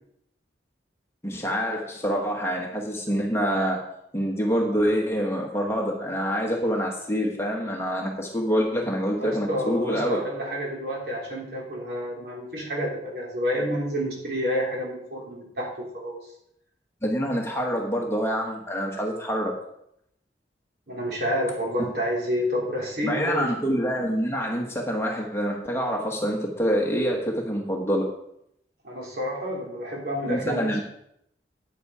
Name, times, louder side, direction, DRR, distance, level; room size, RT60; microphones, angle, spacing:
voice 1, 1.2-3.8 4.1-10.2 17.0-19.5 23.0-28.1 30.3-30.8, equal, 15° left, 0 dB, 1.3 m, -26 dB
voice 2, 9.2-16.2 20.9-23.5 28.8-30.8, equal, 60° right, -3 dB, 3.5 m, -29 dB
9.6 x 8.4 x 4.8 m, 0.76 s
head